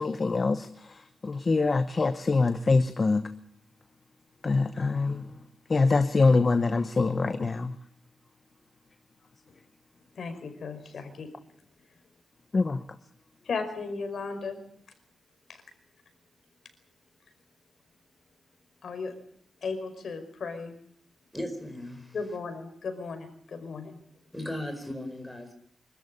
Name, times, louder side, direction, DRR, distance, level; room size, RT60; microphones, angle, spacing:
voice 1, 0.0-3.3 4.4-5.4 5.7-7.8 12.5-13.0, left 3 dB, 30° left, 10 dB, 1.0 m, -25 dB
voice 2, 10.2-11.3 13.5-14.6 18.8-19.1 19.6-20.7 22.1-24.0, left 4 dB, 55° left, 7 dB, 5.1 m, -35 dB
voice 3, 21.3-22.2 24.3-25.5, left 1 dB, 5° left, 4 dB, 4.9 m, -36 dB
25.5 x 13.5 x 9.9 m, 0.67 s
wide cardioid pair, 175°, 0 cm